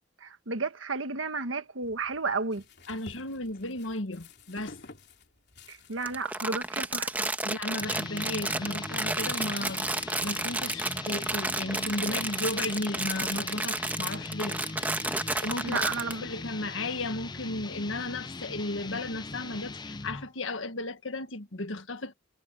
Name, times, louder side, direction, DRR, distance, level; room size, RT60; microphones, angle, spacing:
voice 1, 0.2-2.6 5.7-7.3 15.6-16.3, right 4 dB, 75° right, 1.5 m, -32 dB
sound 1, 1.8-8.9, left 2 dB, 60° left, 3.3 m, -53 dB
voice 2, 2.9-4.8 7.4-14.6 15.4-15.8 16.2-22.1, left 2 dB, 75° left, 1.6 m, -34 dB
Crumpling crinkling, 6.0-16.1, right 2 dB, 10° right, 1.4 m, -31 dB
sound 2, 7.8-20.3, left 3 dB, 20° left, 0.5 m, -40 dB
head